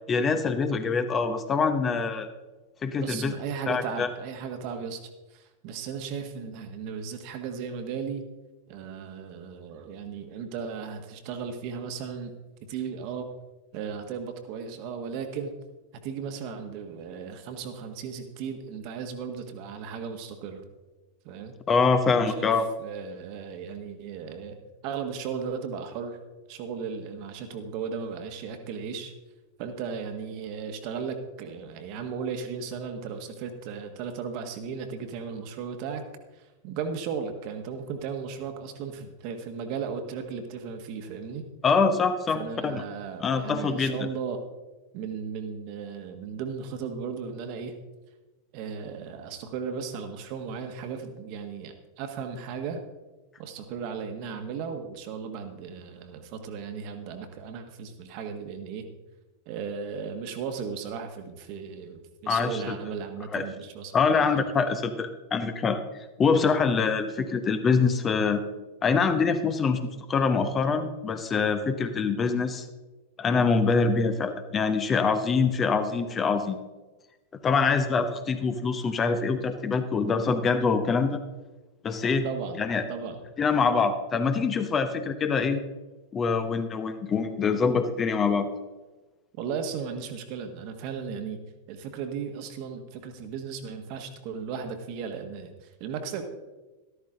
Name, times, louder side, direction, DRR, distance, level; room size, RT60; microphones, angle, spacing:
voice 1, 0.1-2.3 2.8-3.3 3.7-4.1 21.7-22.6 41.6-42.8 43.2-43.9 62.3-62.8 63.3-63.4 63.9-65.8 66.2-68.4 68.8-69.8 70.1-72.7 73.2-76.6 77.4-81.2 81.8-82.3 82.6-82.8 83.4-85.6 86.1-88.5, left 5 dB, 25° left, 8 dB, 1.0 m, -24 dB
voice 2, 3.0-5.0 5.3-8.2 8.7-12.3 12.7-13.3 13.7-15.5 16.0-20.6 21.2-21.5 22.1-22.5 22.8-24.6 24.8-26.2 26.5-29.1 29.6-36.0 36.3-41.4 42.3-44.4 44.9-47.7 48.5-52.8 53.4-58.8 59.5-64.4 64.7-64.8 82.2-82.6 82.9-83.2 89.4-91.4 91.7-96.2, right 6 dB, 45° right, 6 dB, 1.6 m, -36 dB
13.0 x 13.0 x 3.8 m, 1.2 s
figure-of-eight pair, 90°, 0 cm